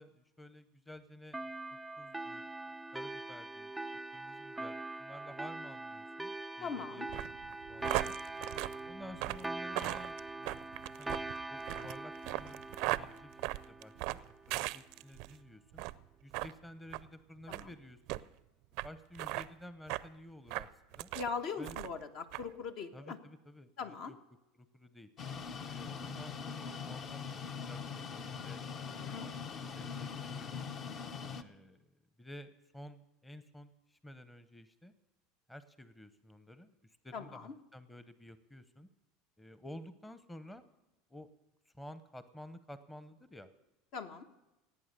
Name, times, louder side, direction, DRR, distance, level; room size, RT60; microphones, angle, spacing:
voice 1, 0.0-1.4 1.7-2.4 2.9-3.7 4.1-7.1 7.4-8.2 8.8-11.2 11.5-15.8 16.2-18.2 18.8-21.1 21.6-21.8 22.9-24.2 24.6-25.1 25.6-29.3 29.7-30.6 31.3-31.9 32.2-34.9 35.5-38.9 39.4-40.6 41.1-41.3 41.7-43.5, left 1 dB, 10° left, 12 dB, 0.8 m, -52 dB
sound 1, 1.3-14.4, right 2 dB, 10° right, 0.4 m, -43 dB
voice 2, 6.6-7.1 17.5-17.7 21.1-23.2 23.8-24.1 28.9-29.3 37.1-37.5 43.9-44.3, left 5 dB, 60° left, 7 dB, 1.2 m, -41 dB
sound 2, 7.1-15.3 15.7-16.0 16.3-16.5 16.9-17.1 17.5-17.7 18.1-18.2 18.8-18.9 19.1-19.5 19.9-20.1 20.5-21.3 21.6-22.0 22.3-22.4, right 19 dB, 65° right, 0.4 m, -38 dB
sound 3, 25.2-31.4, left 6 dB, 45° left, 0.9 m, -42 dB
18.0 x 8.7 x 6.7 m, 1.0 s
hypercardioid pair, 95°, 0 cm